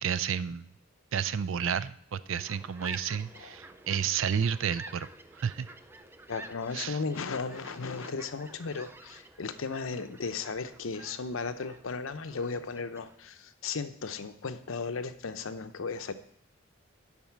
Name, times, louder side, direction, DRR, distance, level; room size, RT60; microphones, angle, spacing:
voice 1, 0.0-0.7 1.1-5.1 5.3-5.7 6.7-7.0, right 7 dB, 70° right, 14 dB, 0.4 m, -31 dB
sound 1, 2.3-13.1, right 2 dB, 10° right, 0.4 m, -50 dB
voice 2, 6.3-16.1, left 4 dB, 80° left, 10 dB, 0.7 m, -35 dB
10.5 x 4.1 x 7.3 m, 0.66 s
head